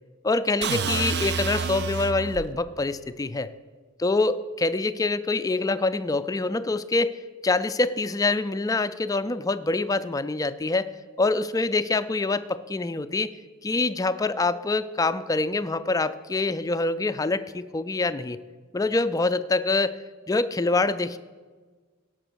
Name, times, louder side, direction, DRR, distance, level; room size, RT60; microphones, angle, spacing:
voice 1, 0.2-3.5 4.0-10.9 11.2-13.3 13.6-18.4 18.7-20.0 20.3-21.2, left 3 dB, 15° left, 12 dB, 0.4 m, -25 dB
sound 1, 0.6-2.5, right 5 dB, 55° right, 0.6 m, -28 dB
16.5 x 6.0 x 6.3 m, 1.4 s
head